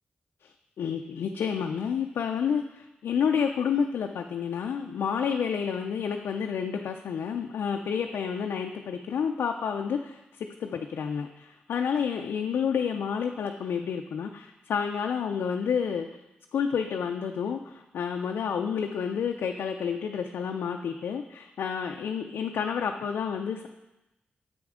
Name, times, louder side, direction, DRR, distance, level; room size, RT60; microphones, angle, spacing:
voice 1, 0.4-16.1 16.5-23.7, left 7 dB, 85° left, 3 dB, 0.4 m, -30 dB
7.7 x 6.2 x 3.7 m, 0.95 s
cardioid pair, 60°, 4 cm